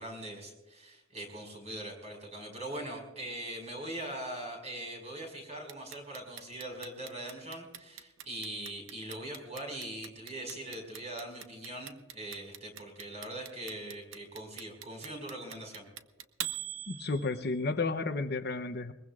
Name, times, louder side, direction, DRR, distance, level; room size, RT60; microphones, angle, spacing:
voice 1, 0.0-15.9, right 1 dB, 30° right, 2 dB, 5.2 m, -41 dB
Clock, 5.7-17.7, right 11 dB, 65° right, 0.8 m, -42 dB
voice 2, 16.9-18.9, left 3 dB, 50° left, 9 dB, 0.7 m, -32 dB
22.0 x 21.5 x 2.4 m, 1.1 s
head